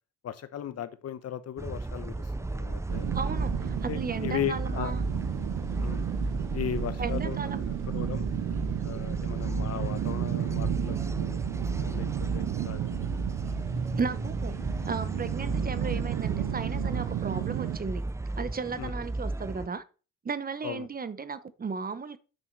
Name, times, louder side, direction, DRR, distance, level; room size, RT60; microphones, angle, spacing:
voice 1, 0.2-3.1 3.9-4.9 5.8-6.0 6.5-8.3 8.8-11.4 11.8-12.1 12.3-13.0 18.8-18.9 20.6-20.9, left 10 dB, 55° left, 0.9 m, -37 dB
sound 1, 1.6-19.7, right 2 dB, 10° right, 0.4 m, -34 dB
sound 2, 2.9-17.8, right 13 dB, 75° right, 0.6 m, -33 dB
voice 2, 3.1-5.0 7.0-7.6 14.0-14.6 14.8-18.0 18.4-19.8 20.2-22.2, right 5 dB, 30° right, 0.9 m, -35 dB
8.8 x 6.2 x 4.6 m
cardioid pair, 90°, 30 cm